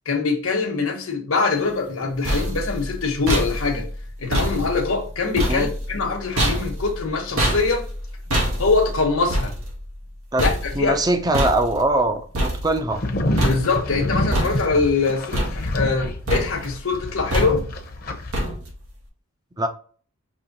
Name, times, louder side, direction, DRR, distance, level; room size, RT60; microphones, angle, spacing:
voice 1, 0.1-3.9 4.2-7.9 8.6-9.5 10.4-11.0 13.4-17.6, left 4 dB, 75° left, 1.1 m, -23 dB
sound 1, 1.9-13.1 13.4-14.0 14.3-15.0 15.3-16.0 16.3-16.8 17.3-17.9 18.3-18.9, equal, 90° right, 1.5 m, -26 dB
voice 2, 10.7-13.0 19.6-19.7, right 2 dB, 20° right, 0.5 m, -22 dB
sound 2, 12.9-18.3, left 1 dB, 45° left, 0.8 m, -27 dB
5.5 x 3.0 x 2.9 m
head